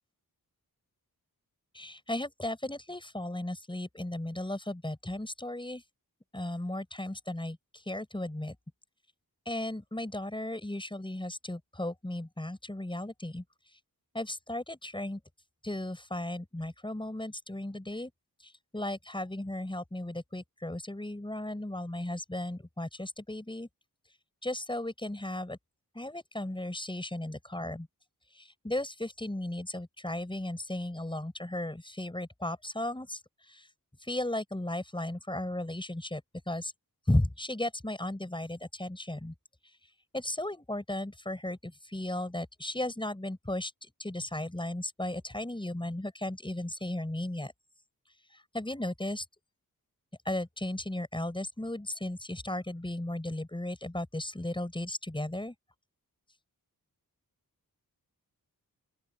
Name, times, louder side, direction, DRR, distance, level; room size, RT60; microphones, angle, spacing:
voice 1, 1.7-5.8 6.3-7.6 7.9-8.6 9.5-13.4 14.1-15.2 15.6-18.1 18.7-23.7 24.4-25.6 25.9-27.9 28.4-33.2 33.5-33.6 34.1-36.7 37.1-39.3 40.1-43.7 44.0-47.5 48.5-49.2 50.3-55.5, left 1 dB, 15° left, 7.6 m, -35 dB
open air
wide cardioid pair, 135°, 37 cm